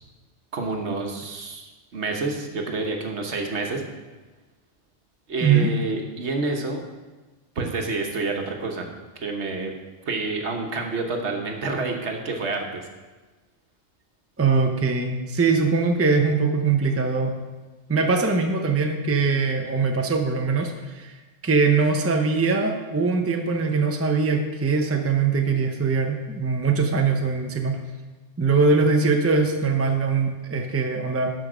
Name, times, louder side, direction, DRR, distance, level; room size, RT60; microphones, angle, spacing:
voice 1, 0.5-3.8 5.3-6.8 7.6-8.9 9.2-9.7 10.1-12.9, right 3 dB, 70° right, 3 dB, 1.4 m, -28 dB
voice 2, 5.4-5.7 14.4-17.3 17.9-21.1 21.4-27.8 28.4-31.3, right 4 dB, 15° right, 4 dB, 0.6 m, -22 dB
12.5 x 5.2 x 5.0 m, 1.2 s
omnidirectional pair, 1.2 m